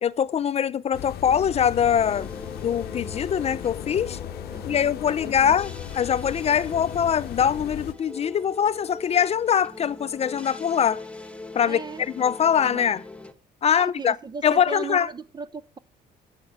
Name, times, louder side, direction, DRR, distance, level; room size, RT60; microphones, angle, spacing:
voice 1, 0.0-2.3 2.6-4.2 4.7-11.0 11.5-11.8 12.2-13.0 13.6-14.2 14.4-15.1, left 8 dB, 40° left, 0.5 m, -23 dB
sound 1, 0.9-7.9, left 11 dB, 70° left, 0.8 m, -37 dB
sound 2, 2.0-13.3, left 3 dB, 5° left, 1.3 m, -41 dB
voice 2, 4.5-5.6 11.6-12.0 12.6-12.9 13.7-15.8, right 5 dB, 25° right, 0.6 m, -38 dB
8.6 x 7.5 x 8.7 m
cardioid pair, 110°, 17 cm